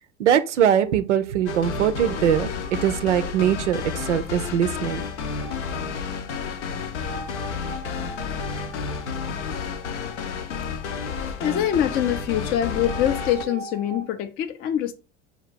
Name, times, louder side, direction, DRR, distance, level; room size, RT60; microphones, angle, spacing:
voice 1, 0.2-2.5 2.8-5.0, right 9 dB, 75° right, 0.5 m, -21 dB
sound 1, 0.8-14.1, right 6 dB, 20° right, 0.6 m, -42 dB
sound 2, 1.5-13.4, left 6 dB, 70° left, 0.6 m, -31 dB
voice 2, 11.4-14.9, left 10 dB, 30° left, 0.3 m, -24 dB
4.4 x 2.4 x 4.0 m
figure-of-eight pair, 70°, 36 cm